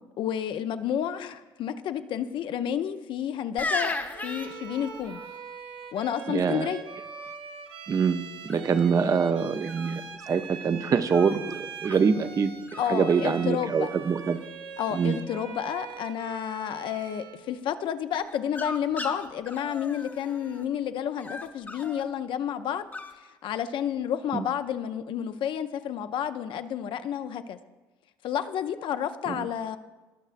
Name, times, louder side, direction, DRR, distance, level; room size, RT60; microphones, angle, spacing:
voice 1, 0.2-4.0 4.2-5.2 5.9-6.8 12.8-13.9 14.8-22.9 23.2-27.6 28.2-29.8, left 9 dB, 60° left, 10 dB, 0.5 m, -30 dB
sound 1, 3.6-5.3 8.5-8.9 9.6-10.5 11.1-12.0 12.7-12.8 13.1-13.6 13.8-14.4 18.1-20.6 21.2-22.0 22.9-23.1, left 2 dB, 20° left, 0.9 m, -37 dB
Bowed string instrument, 4.1-17.5, right 7 dB, 70° right, 0.8 m, -43 dB
voice 2, 6.3-6.7 7.9-10.0 10.3-11.5 11.8-14.4 14.9-15.2 24.3-24.5 29.3-29.5, right 6 dB, 40° right, 10 dB, 0.6 m, -25 dB
18.0 x 6.1 x 2.5 m, 1.2 s
supercardioid pair, 65°, 9 cm